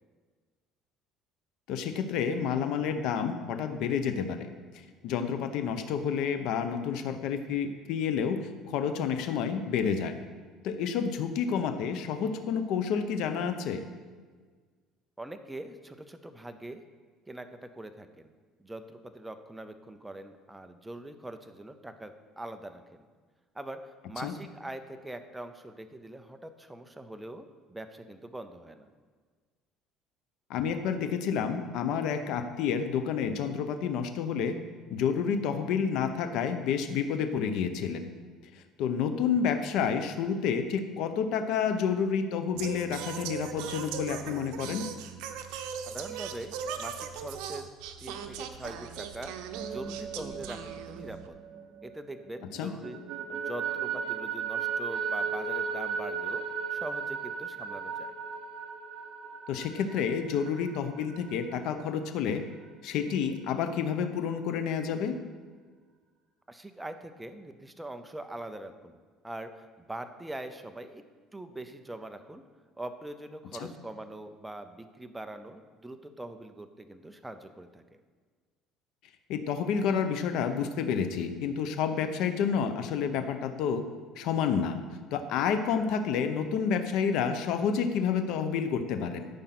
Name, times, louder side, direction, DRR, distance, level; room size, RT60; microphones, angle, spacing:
voice 1, 1.7-4.5 5.0-10.2 10.6-13.8 24.2-24.3 30.5-34.5 34.9-38.0 38.5-44.9 52.6-52.7 59.5-62.4 62.8-65.2 73.6-73.7 79.3-83.8 84.2-84.8 85.1-89.3, left 7 dB, 65° left, 8 dB, 0.9 m, -29 dB
voice 2, 15.2-16.8 17.3-18.3 18.6-23.0 23.5-28.9 45.9-47.7 48.0-49.3 49.6-51.4 51.8-53.0 53.3-56.4 56.7-58.1 66.5-69.0 69.2-71.0 71.3-72.4 72.8-77.8, right 1 dB, 5° right, 7 dB, 0.6 m, -42 dB
Singing, 42.6-51.3, right 7 dB, 80° right, 0.8 m, -39 dB
sound 1, 49.4-52.2 52.5-62.0, right 6 dB, 55° right, 1.0 m, -36 dB
13.0 x 5.3 x 6.0 m, 1.5 s
cardioid pair, 145°, 0 cm